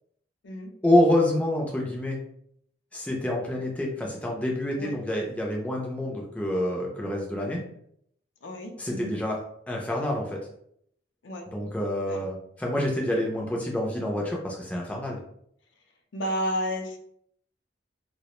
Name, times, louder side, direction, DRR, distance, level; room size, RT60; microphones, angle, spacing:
voice 1, 0.8-2.2 2.9-7.6 8.8-9.4 9.7-10.4 11.5-15.2, left 1 dB, 5° left, -2 dB, 0.3 m, -27 dB
voice 2, 8.4-9.2 11.2-11.4 12.1-12.2 16.1-17.0, equal, 80° left, 2 dB, 0.5 m, -31 dB
2.3 x 2.0 x 2.9 m, 0.70 s
head